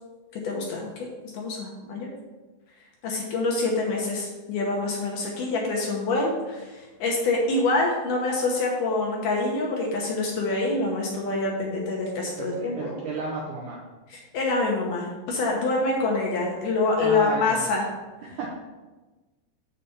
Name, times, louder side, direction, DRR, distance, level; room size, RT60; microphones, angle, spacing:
voice 1, 0.4-1.1 1.3-2.1 3.0-13.0 14.1-17.9, left 3 dB, 70° left, -2 dB, 2.2 m, -26 dB
voice 2, 12.4-13.8 17.0-17.7 18.2-18.5, right 3 dB, 75° right, -3 dB, 1.8 m, -33 dB
7.1 x 4.1 x 6.7 m, 1.2 s
omnidirectional pair, 4.6 m